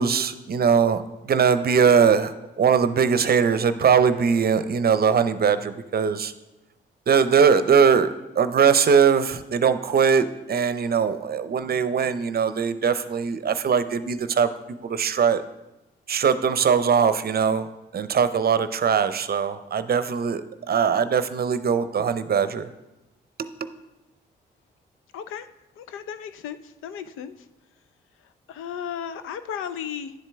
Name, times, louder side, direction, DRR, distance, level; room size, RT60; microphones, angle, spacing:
voice 1, 0.0-6.3 7.1-8.1 8.4-15.4 16.1-17.7 17.9-22.7 23.4-23.5, right 6 dB, 50° right, 12 dB, 0.6 m, -21 dB
voice 2, 25.1-25.5 25.8-27.3 28.5-30.1, left 8 dB, 85° left, 11 dB, 0.5 m, -34 dB
10.5 x 7.5 x 3.5 m, 0.97 s
supercardioid pair, 60°, 21 cm